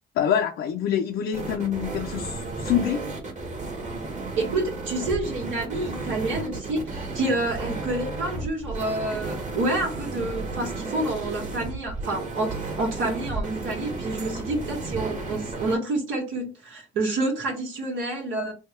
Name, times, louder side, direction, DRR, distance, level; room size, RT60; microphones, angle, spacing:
voice 1, 0.2-3.2, left 9 dB, 80° left, 0.6 m, -26 dB
sound 1, 1.3-15.8, right 3 dB, 35° right, 1.4 m, -33 dB
voice 2, 4.4-18.5, right 2 dB, 85° right, 1.4 m, -28 dB
3.4 x 2.3 x 4.3 m
cardioid pair, 90°, 20 cm